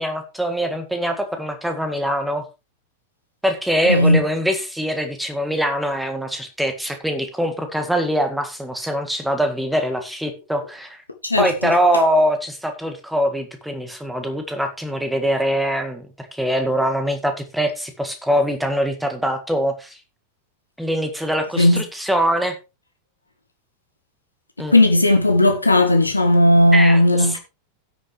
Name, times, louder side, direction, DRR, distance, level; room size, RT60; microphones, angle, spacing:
voice 1, 0.0-2.4 3.4-11.0 11.4-20.0 20.8-22.6 24.6-24.8 26.7-27.4, equal, 5° right, 1.8 m, -23 dB
voice 2, 3.9-4.2 11.2-11.7 21.6-21.8 24.7-27.4, left 1 dB, 85° left, 0.9 m, -15 dB
17.0 x 6.4 x 3.1 m
figure-of-eight pair, 90°, 0 cm